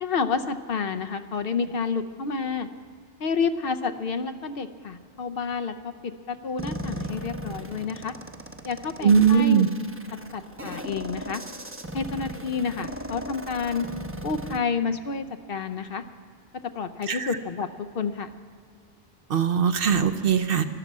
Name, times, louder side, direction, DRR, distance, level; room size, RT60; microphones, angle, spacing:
voice 1, 0.0-2.7 3.2-8.1 8.6-9.6 10.3-11.4 11.9-13.9 14.2-16.0 16.7-17.7 17.9-18.3, left 5 dB, 60° left, 10 dB, 0.8 m, -29 dB
sound 1, 6.6-14.6, equal, 15° right, 0.7 m, -37 dB
voice 2, 9.0-9.7 17.1-17.4 19.3-20.6, right 7 dB, 60° right, 10 dB, 0.8 m, -20 dB
13.0 x 12.0 x 7.3 m, 2.2 s
omnidirectional pair, 1.1 m